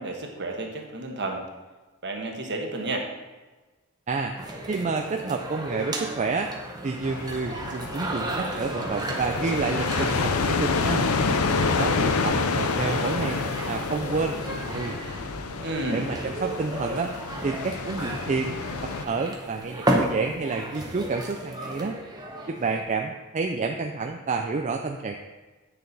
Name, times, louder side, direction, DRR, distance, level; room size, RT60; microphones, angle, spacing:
voice 1, 0.0-1.4 2.0-3.1 15.6-16.1, right 2 dB, 55° right, 2 dB, 1.3 m, -31 dB
sound 1, 4.4-22.8, right 1 dB, 20° right, 1.0 m, -34 dB
voice 2, 4.7-6.5 6.8-11.0 11.6-13.4 13.7-15.0 15.9-17.1 17.4-18.5 18.8-22.0 22.5-25.1, right 4 dB, 35° right, 3 dB, 0.4 m, -29 dB
sound 2, 7.0-19.0, left 4 dB, 80° left, 0.6 m, -28 dB
8.5 x 6.7 x 4.1 m, 1.2 s
head